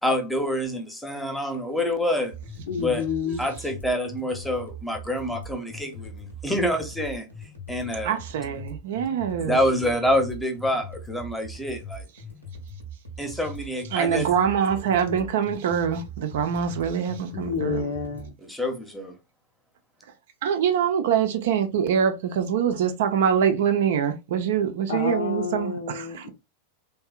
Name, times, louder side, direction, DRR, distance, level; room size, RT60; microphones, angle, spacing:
voice 1, 0.0-2.3 2.8-3.0 3.4-7.3 7.7-8.2 9.4-12.1 13.2-14.3 18.4-19.1, left 1 dB, 5° left, 0.8 m, -27 dB
sound 1, 2.3-18.3, equal, 90° left, 1.1 m, -41 dB
voice 2, 2.7-3.4 17.3-18.4 24.9-26.3, left 6 dB, 60° left, 0.6 m, -29 dB
voice 3, 8.0-9.6 13.9-17.8 20.4-26.3, right 8 dB, 55° right, 0.5 m, -24 dB
3.5 x 2.7 x 2.3 m
figure-of-eight pair, 90°, 0 cm